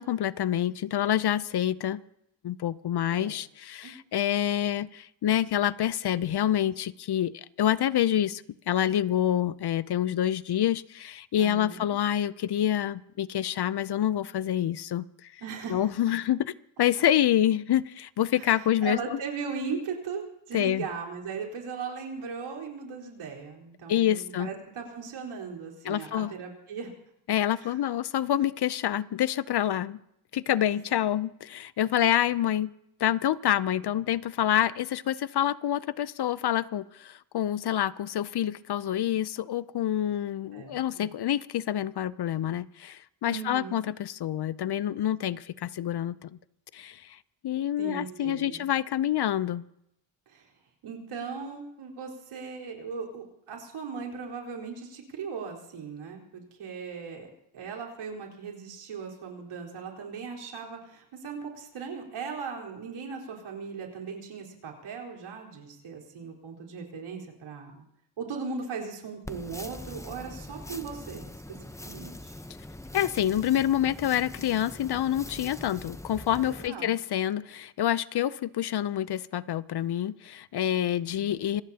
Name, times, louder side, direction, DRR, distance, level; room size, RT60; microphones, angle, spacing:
voice 1, 0.0-2.0 2.4-15.3 15.7-16.5 16.8-19.2 20.5-20.8 23.9-24.5 25.8-26.3 27.3-30.0 30.3-32.7 33.0-46.3 46.7-47.2 47.4-49.6 72.9-81.6, left 11 dB, 55° left, 18 dB, 0.6 m, -27 dB
voice 2, 11.4-11.9 15.4-15.9 18.4-26.9 27.6-27.8 30.7-30.8 40.5-41.1 43.3-43.9 47.8-48.7 50.3-50.5 50.8-67.8 68.2-71.2 71.5-71.6 71.8-72.3 76.4-76.9 81.1-81.3, right 5 dB, 80° right, -2 dB, 4.4 m, -38 dB
sound 1, 69.2-76.7, left 1 dB, 5° left, 0.8 m, -43 dB
26.5 x 17.5 x 2.9 m, 0.78 s
cardioid pair, 75°, 49 cm